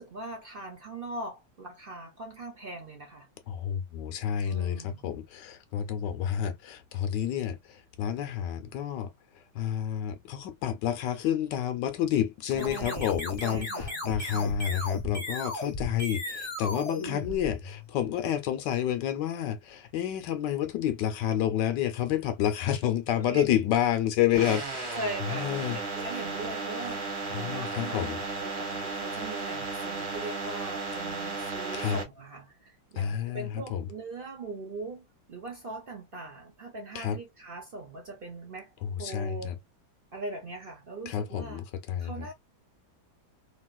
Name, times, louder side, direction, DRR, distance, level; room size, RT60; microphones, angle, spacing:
voice 1, 0.0-3.3 4.4-5.1 12.4-13.1 13.4-14.0 14.3-14.7 17.0-17.6 23.3-23.5 24.4-24.6 24.9-38.7 39.0-39.6 40.1-41.6 42.0-42.3, right 2 dB, 60° right, 0.5 m, -41 dB
voice 2, 3.5-9.1 9.5-25.0 25.3-25.8 27.3-28.2 31.7-32.0 33.0-33.9 36.9-37.2 38.8-39.5 41.1-42.3, left 10 dB, 70° left, 1.2 m, -29 dB
sound 1, 12.5-17.9, left 2 dB, 25° left, 1.1 m, -36 dB
sound 2, 24.3-32.0, right 3 dB, 40° right, 1.2 m, -34 dB
3.0 x 2.8 x 2.3 m
omnidirectional pair, 2.1 m